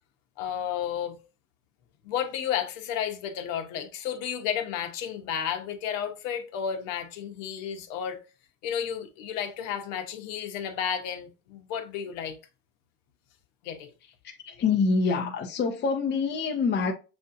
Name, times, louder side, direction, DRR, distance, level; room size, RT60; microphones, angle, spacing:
voice 1, 0.4-1.2 2.0-8.2 8.6-12.4 13.6-13.9, left 8 dB, 65° left, 1.1 m, -32 dB
voice 2, 14.2-16.9, left 4 dB, 25° left, 0.8 m, -26 dB
6.9 x 2.7 x 2.5 m
supercardioid pair, 115°, 41 cm